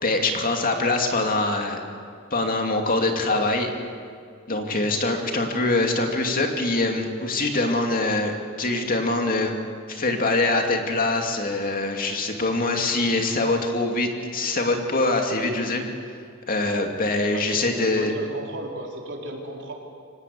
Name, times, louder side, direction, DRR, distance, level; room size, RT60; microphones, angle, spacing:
voice 1, 0.0-1.8 2.3-3.7 4.5-9.6 9.9-15.8 16.5-18.1, left 2 dB, 40° left, 3 dB, 2.5 m, -24 dB
voice 2, 17.3-17.6 17.9-19.7, right 1 dB, 60° right, 0 dB, 4.0 m, -34 dB
25.0 x 18.0 x 8.5 m, 2.3 s
head